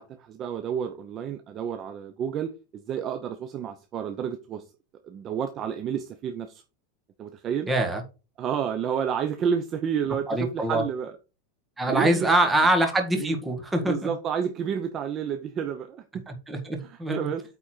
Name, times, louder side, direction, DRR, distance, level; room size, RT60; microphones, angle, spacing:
voice 1, 0.0-4.6 5.0-6.6 7.2-7.7 8.4-11.1 11.9-12.3 13.2-13.4 13.8-16.2 16.8-17.4, right 8 dB, 25° right, 8 dB, 0.7 m, -30 dB
voice 2, 7.7-8.0 10.3-10.8 11.8-14.1 16.3-17.3, right 1 dB, 10° right, 4 dB, 1.6 m, -24 dB
8.7 x 4.1 x 4.5 m, 0.31 s
supercardioid pair, 160°, 0 cm